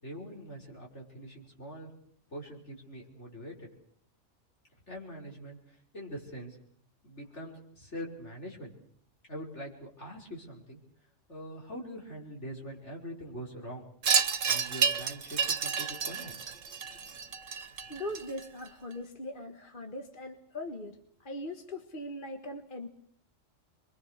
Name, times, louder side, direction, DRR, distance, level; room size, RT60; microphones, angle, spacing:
voice 1, 0.0-1.9 2.3-3.7 4.9-6.6 7.0-8.7 9.3-10.8 11.3-13.8 14.5-16.3, equal, 65° left, -1 dB, 5.9 m, -43 dB
Wind chime, 14.0-18.7, right 6 dB, 90° right, 1.6 m, -30 dB
voice 2, 17.9-21.0 21.2-22.9, left 1 dB, 45° left, 4 dB, 1.7 m, -40 dB
27.5 x 23.0 x 6.6 m, 0.62 s
omnidirectional pair, 1.3 m